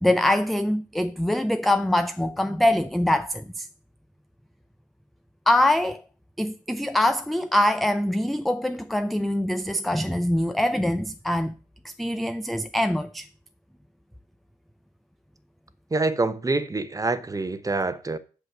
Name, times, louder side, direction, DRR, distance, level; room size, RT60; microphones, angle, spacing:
voice 1, 0.0-3.7 5.5-6.0 6.4-11.5 11.8-13.3, left 1 dB, ahead, 0.4 m, -23 dB
voice 2, 15.9-18.2, right 3 dB, 15° right, 0.9 m, -26 dB
7.8 x 5.6 x 5.9 m
figure-of-eight pair, 45°, 20 cm